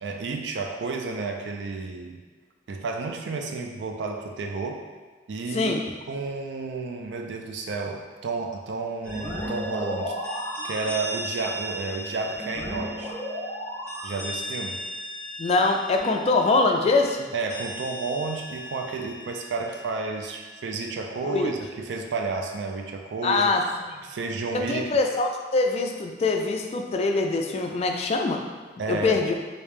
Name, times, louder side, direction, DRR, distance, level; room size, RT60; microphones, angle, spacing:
voice 1, 0.0-2.2 2.7-4.8 5.3-5.7 6.1-10.2 10.6-13.2 14.0-14.8 17.3-23.5 24.0-25.0 28.8-29.2, right 3 dB, 70° right, 3 dB, 0.4 m, -31 dB
sound 1, 9.0-20.6, equal, 10° left, 1.4 m, -35 dB
voice 2, 15.4-17.3 21.2-21.5 23.2-24.0 24.5-28.4 28.9-29.4, left 3 dB, 35° left, 3 dB, 0.3 m, -23 dB
3.3 x 2.7 x 3.1 m, 1.4 s
head